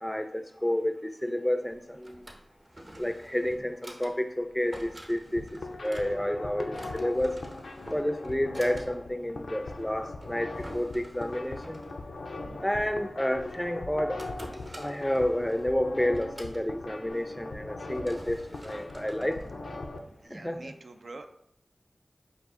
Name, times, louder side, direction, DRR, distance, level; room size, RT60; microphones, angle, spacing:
voice 1, 0.0-2.3 3.0-7.4 7.9-11.8 12.6-14.3 14.8-19.4 20.3-20.7, left 1 dB, 10° left, 8 dB, 0.3 m, -30 dB
Drawer open or close, 1.7-20.3, right 1 dB, 35° right, 0.7 m, -50 dB
sound 1, 5.2-20.0, left 2 dB, 90° left, 0.4 m, -40 dB
voice 2, 12.3-12.7 18.9-19.5 20.2-21.3, right 3 dB, 75° right, 7 dB, 0.3 m, -47 dB
4.5 x 2.4 x 3.5 m, 0.75 s
wide cardioid pair, 50°, 0 cm